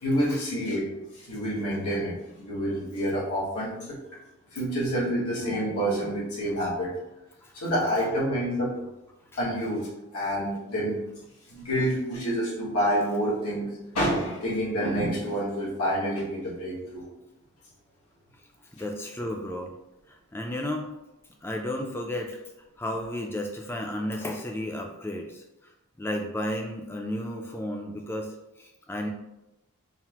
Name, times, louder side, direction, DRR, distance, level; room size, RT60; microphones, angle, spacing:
voice 1, 0.0-4.0 4.5-6.9 7.5-8.7 9.4-11.0 11.5-17.1 18.8-18.9, equal, 90° left, -7 dB, 1.4 m, -28 dB
voice 2, 18.7-19.7 20.1-20.9 21.4-22.4 22.8-25.4 26.0-29.1, left 1 dB, 10° left, 2 dB, 0.3 m, -33 dB
5.7 x 2.1 x 2.9 m, 0.93 s
head